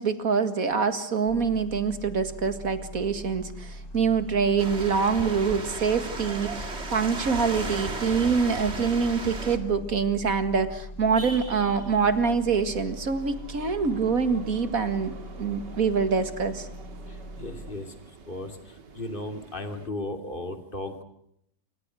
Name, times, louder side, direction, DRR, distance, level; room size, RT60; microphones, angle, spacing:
voice 1, 0.0-16.7, right 5 dB, 50° right, 10 dB, 2.3 m, -25 dB
sound 1, 1.3-17.7, equal, 80° left, 4.5 m, -41 dB
sound 2, 4.6-9.6, right 3 dB, 35° right, 2.6 m, -35 dB
sound 3, 11.0-19.9, right 4 dB, 75° right, 2.8 m, -46 dB
voice 2, 17.1-17.9 18.3-21.0, left 2 dB, 30° left, 7 dB, 3.0 m, -36 dB
27.5 x 25.0 x 6.4 m, 0.73 s
omnidirectional pair, 1.9 m